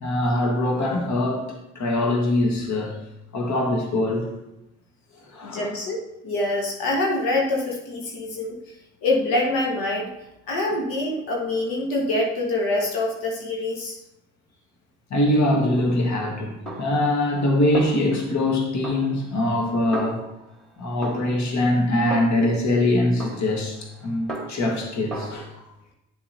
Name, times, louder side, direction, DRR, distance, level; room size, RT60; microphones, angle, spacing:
voice 1, 0.0-3.0 3.3-4.3 5.3-5.7 15.1-20.3 20.8-25.5, left 1 dB, 45° left, 1 dB, 1.7 m, -23 dB
voice 2, 5.4-8.5 9.0-10.1 10.5-14.0, left 2 dB, 60° left, -1 dB, 1.7 m, -25 dB
Snare drum, 16.7-17.5 17.7-18.5 18.8-20.6 21.0-22.7 23.2-24.8 25.1-25.4, right 2 dB, ahead, 2.5 m, -36 dB
10.0 x 7.1 x 2.8 m, 0.88 s
hypercardioid pair, 55°, 39 cm